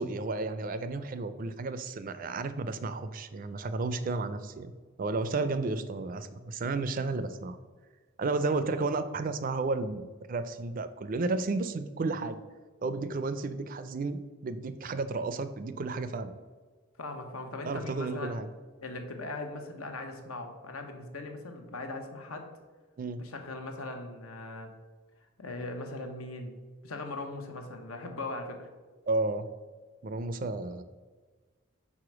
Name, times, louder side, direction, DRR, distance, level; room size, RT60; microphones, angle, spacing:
voice 1, 0.0-4.7 5.0-7.6 8.2-12.4 12.8-16.3 17.6-18.5 23.0-23.2 29.1-29.5 30.0-30.8, right 3 dB, 40° right, 12 dB, 0.3 m, -32 dB
voice 2, 17.0-18.3 18.8-22.5 23.2-24.7 25.4-26.5 26.8-28.7, left 2 dB, 85° left, 5 dB, 0.9 m, -39 dB
4.9 x 4.2 x 5.9 m, 1.4 s
head